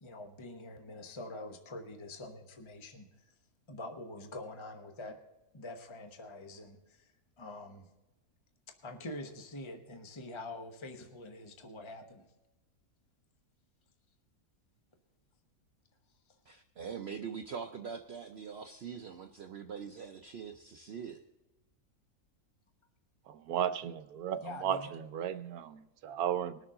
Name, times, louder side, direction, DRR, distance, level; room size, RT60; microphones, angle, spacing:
voice 1, 0.0-3.3 3.7-5.2 5.5-7.1 7.4-7.9 8.8-12.3 24.4-24.9, left 2 dB, 20° left, 4 dB, 1.0 m, -45 dB
voice 2, 16.5-21.2, right 6 dB, 55° right, 5 dB, 0.8 m, -43 dB
voice 3, 23.3-26.6, right 9 dB, 85° right, 11 dB, 1.2 m, -35 dB
21.0 x 7.0 x 3.8 m, 1.0 s
omnidirectional pair, 1.6 m